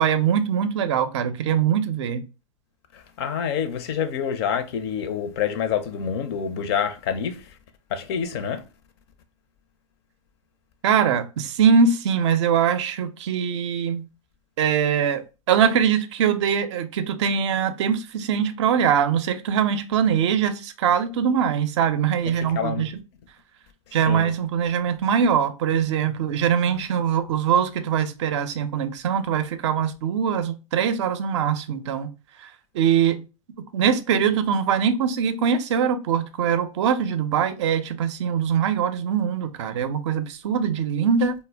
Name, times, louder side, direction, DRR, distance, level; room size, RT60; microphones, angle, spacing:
voice 1, 0.0-2.2 10.8-14.0 14.6-22.9 23.9-32.1 32.4-32.5 32.7-33.2 33.7-41.3, right 7 dB, 55° right, 0.4 m, -22 dB
voice 2, 2.9-7.5 7.9-8.6 22.4-22.9 24.1-24.3, left 7 dB, 50° left, 0.4 m, -27 dB
2.1 x 2.0 x 3.3 m
hypercardioid pair, 110°, 17 cm